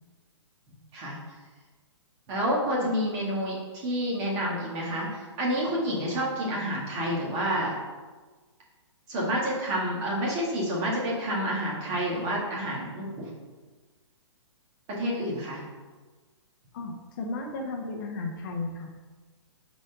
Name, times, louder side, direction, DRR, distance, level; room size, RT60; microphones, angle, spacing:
voice 1, 2.3-7.8 9.1-13.3 14.9-15.6, equal, 30° right, -4 dB, 1.8 m, -29 dB
voice 2, 16.7-18.9, left 3 dB, 40° left, 2 dB, 0.8 m, -34 dB
4.8 x 4.1 x 5.7 m, 1.3 s
hypercardioid pair, 150°, 16 cm